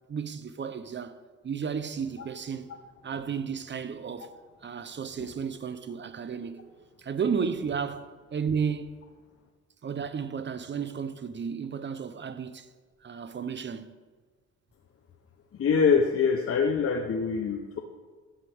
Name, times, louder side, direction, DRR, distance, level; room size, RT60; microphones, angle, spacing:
voice 1, 0.1-2.7 3.0-4.3 4.6-9.0 9.8-12.7 13.0-14.0, right 6 dB, 40° right, 0.9 m, -33 dB
voice 2, 15.5-17.8, left 5 dB, 50° left, 1.1 m, -24 dB
13.0 x 12.5 x 3.6 m
cardioid pair, 90°, 30 cm